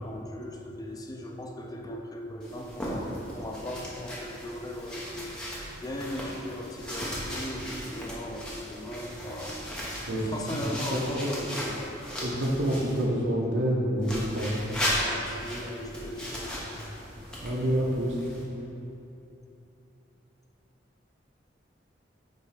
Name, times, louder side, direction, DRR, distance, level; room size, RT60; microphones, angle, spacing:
voice 1, 0.0-5.1 5.8-9.6 10.1-12.0 14.8-16.8, left 1 dB, 20° left, 1 dB, 0.5 m, -38 dB
sound 1, 2.4-13.0 14.0-18.4, equal, 5° left, 1.2 m, -36 dB
voice 2, 10.9-11.3 12.2-14.6 17.4-18.2, equal, 85° right, -3 dB, 1.1 m, -27 dB
9.0 x 3.3 x 4.9 m, 2.9 s
head